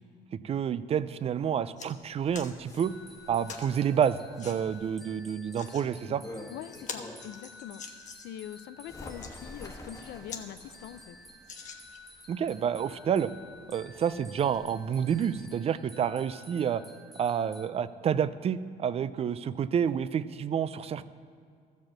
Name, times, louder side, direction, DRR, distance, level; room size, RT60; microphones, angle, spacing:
voice 1, 0.3-2.9 3.3-6.2 12.3-13.3 13.7-16.8 17.2-21.1, right 8 dB, 35° right, 15 dB, 0.4 m, -29 dB
sound 1, 1.1-1.2 1.5-1.9 2.3-2.5 3.5-3.7 4.4-4.6 5.3-5.9 6.3-6.4 6.7-8.4 9.0-9.3 9.9-10.0 10.3-10.5 10.8-10.9 11.4-12.1 12.8-12.9, left 6 dB, 45° left, 1.1 m, -44 dB
Bird, 2.0-7.4 7.9-15.6, left 2 dB, 20° left, 1.3 m, -50 dB
sound 2, 2.8-17.7, left 1 dB, ahead, 0.9 m, -52 dB
voice 2, 6.5-11.2, left 11 dB, 80° left, 14 dB, 0.5 m, -44 dB
13.5 x 5.2 x 7.3 m, 2.2 s
cardioid pair, 110°, 17 cm